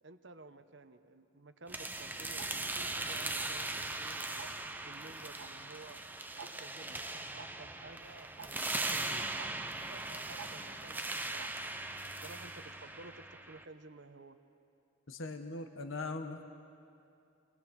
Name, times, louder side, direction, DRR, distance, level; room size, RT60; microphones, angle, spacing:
voice 1, 0.0-4.4 4.8-6.0 6.3-9.3 9.8-11.5 12.2-14.4, right 2 dB, 55° right, 9 dB, 1.1 m, -53 dB
sound 1, 1.7-13.6, right 2 dB, 10° right, 0.7 m, -39 dB
Tick-tock, 2.4-2.5 3.4-3.7 4.4-4.6 5.4-5.5 5.8-5.9 6.4-6.5 7.4-7.5 8.4-8.5 9.4-9.5 10.4-10.5 11.4-11.5, right 6 dB, 85° right, 2.0 m, -47 dB
voice 2, 15.1-16.4, left 3 dB, 70° left, 6 dB, 1.3 m, -40 dB
29.0 x 22.0 x 6.4 m, 2.6 s
head